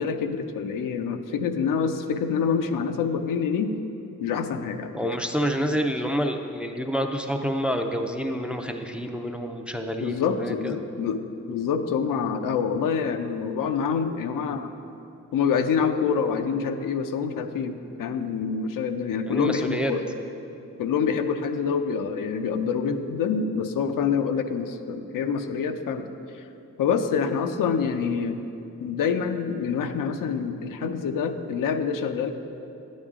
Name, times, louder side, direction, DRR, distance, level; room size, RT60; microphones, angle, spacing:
voice 1, 0.0-3.7 4.2-4.9 5.7-5.8 10.0-14.7 15.3-20.0 20.8-26.1 26.8-28.4 28.8-32.3, left 6 dB, 90° left, 7 dB, 0.6 m, -26 dB
voice 2, 4.9-10.8 19.3-19.9, equal, 5° right, 4 dB, 0.4 m, -28 dB
10.0 x 8.3 x 3.6 m, 2.8 s
wide cardioid pair, 120°, 32 cm